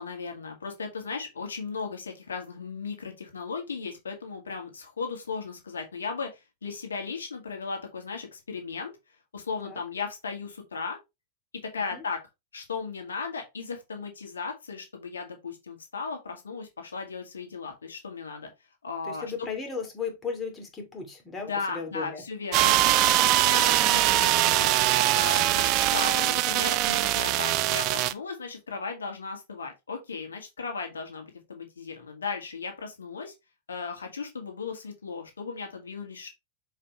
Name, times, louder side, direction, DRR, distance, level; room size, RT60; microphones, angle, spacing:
voice 1, 0.0-8.9 9.3-11.0 11.6-12.2 12.5-18.5 18.8-19.5 21.4-22.7 23.1-33.3 33.7-36.3, left 5 dB, 85° left, 1.9 m, -36 dB
voice 2, 19.0-22.2 22.6-23.3 25.4-25.6, left 5 dB, 20° left, 2.7 m, -36 dB
sound 1, 22.5-28.1, right 15 dB, 45° right, 0.6 m, -22 dB
6.7 x 4.8 x 3.1 m
hypercardioid pair, 105°, 0 cm